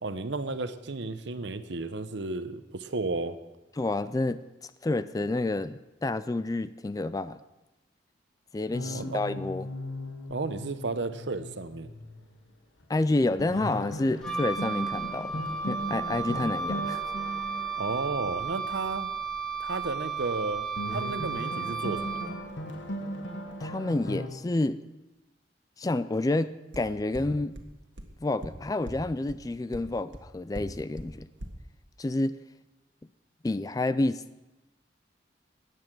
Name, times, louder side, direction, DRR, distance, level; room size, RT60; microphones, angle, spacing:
voice 1, 0.0-3.4 8.8-9.2 10.3-11.9 17.8-19.2 19.6-22.4, right 3 dB, 70° right, 11 dB, 0.8 m, -33 dB
voice 2, 3.8-7.4 8.5-9.7 12.9-17.0 23.6-24.8 25.8-27.5 28.2-31.3 32.0-32.4 33.4-34.2, left 2 dB, 20° left, 14 dB, 0.3 m, -29 dB
sound 1, 8.7-12.5 12.8-12.9 13.4-19.2 20.8-24.3, equal, 80° left, 1.5 m, -38 dB
Wind instrument woodwind instrument, 14.2-22.5, right 5 dB, 5° left, 1.3 m, -34 dB
sound 2, 26.7-26.8 27.1-27.2 27.5-27.6 28.0-28.1 28.4-28.5 28.9-29.0 29.3-29.4 29.7-29.8 30.1-30.2 30.5-30.6 31.0-31.1 31.4-31.5, right 1 dB, 85° right, 1.6 m, -38 dB
14.5 x 9.4 x 6.1 m, 1.0 s
head